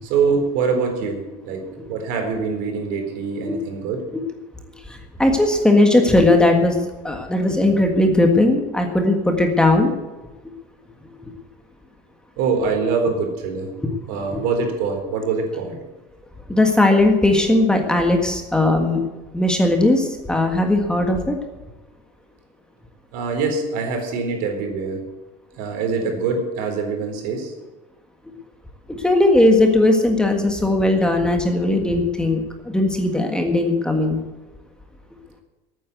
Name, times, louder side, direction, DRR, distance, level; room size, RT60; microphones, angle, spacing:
voice 1, 0.0-4.0 12.4-13.7 14.1-15.8 23.1-25.0 25.6-27.5, right 5 dB, 75° right, 3 dB, 4.0 m, -24 dB
voice 2, 4.9-6.8 7.0-9.9 14.3-14.4 16.5-19.0 19.3-21.4 28.9-34.2, left 2 dB, 5° left, 3 dB, 1.6 m, -18 dB
13.5 x 9.3 x 8.1 m, 1.2 s
cardioid pair, 150°, 15 cm